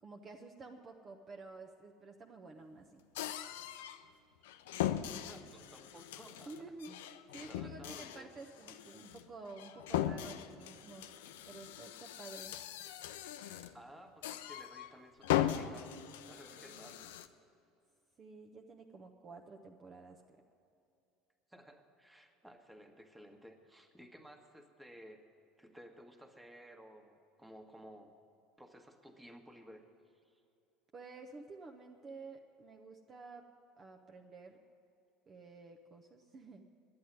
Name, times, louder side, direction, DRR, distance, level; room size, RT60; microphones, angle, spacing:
voice 1, 0.0-3.0 6.5-11.1 11.4-12.6 16.6-17.1 18.2-20.4 30.9-33.5 33.8-34.6 35.3-36.6, right 3 dB, 35° right, 3 dB, 0.9 m, -51 dB
sound 1, 3.2-4.0 4.4-13.8 14.2-14.9 15.2-17.3, left 11 dB, 70° left, 0.5 m, -39 dB
voice 2, 5.3-6.9 7.4-8.3 13.7-15.9 16.3-17.1 21.5-25.3 25.6-28.1 28.6-29.9 30.2-30.4, equal, 10° right, 4 dB, 1.5 m, -56 dB
11.0 x 8.8 x 9.5 m, 2.7 s
figure-of-eight pair, 65°, 0 cm